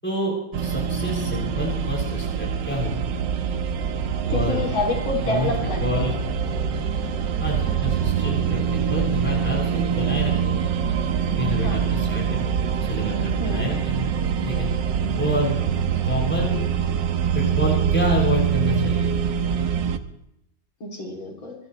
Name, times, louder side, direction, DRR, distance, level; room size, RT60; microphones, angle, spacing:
voice 1, 0.0-3.1 4.3-4.7 5.2-5.5 5.8-6.1 7.2-10.7 11.4-12.5 12.8-14.1 14.4-14.7 15.2-15.6 16.0-16.7 17.3-19.2, left 1 dB, 5° left, -2 dB, 7.1 m, -28 dB
sound 1, 0.5-20.0, right 7 dB, 65° right, 1.6 m, -24 dB
voice 2, 4.3-6.0 11.6-11.9 13.4-13.7 20.8-21.5, left 3 dB, 75° left, 0 dB, 3.9 m, -28 dB
26.0 x 14.0 x 3.3 m, 0.83 s
omnidirectional pair, 2.2 m